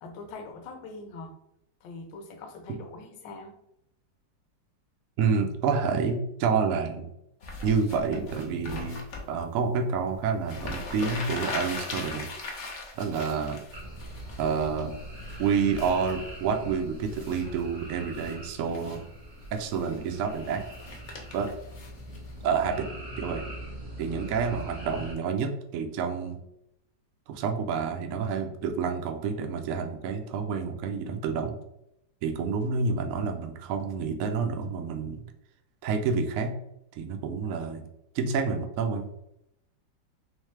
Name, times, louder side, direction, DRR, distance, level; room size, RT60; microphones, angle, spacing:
voice 1, 0.0-1.3 1.8-3.6, left 3 dB, 75° left, 5 dB, 1.3 m, -42 dB
voice 2, 5.2-7.1 7.6-12.3 13.0-13.6 14.4-14.9 15.4-19.0 19.5-20.6 21.3-21.5 22.4-22.9 23.2-23.4 24.0-26.4 27.3-31.6 32.2-35.2 35.8-36.5 37.0-37.8 38.1-39.1, right 5 dB, 80° right, 4 dB, 0.7 m, -28 dB
sound 1, 7.4-9.2 10.1-10.2 10.4-14.8 15.2-16.1 17.0-17.6 18.0-18.4 18.6-19.0 19.4-22.5, left 3 dB, 55° left, 0.8 m, -40 dB
sound 2, 13.7-25.1, right 1 dB, 30° right, 0.7 m, -42 dB
3.3 x 3.1 x 3.1 m, 0.82 s
omnidirectional pair, 2.0 m